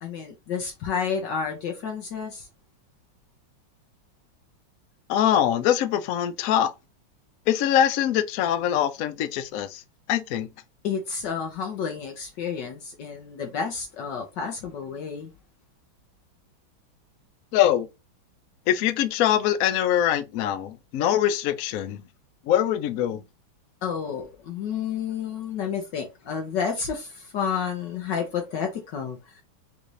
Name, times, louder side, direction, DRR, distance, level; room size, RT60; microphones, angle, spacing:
voice 1, 0.0-2.5 10.8-15.3 23.8-29.4, left 6 dB, 65° left, 1.4 m, -30 dB
voice 2, 5.1-6.7 7.5-9.8 10.1-10.5 17.5-17.9 18.7-22.0 22.5-23.2, left 11 dB, 85° left, 0.7 m, -23 dB
4.1 x 2.6 x 4.7 m
omnidirectional pair, 2.1 m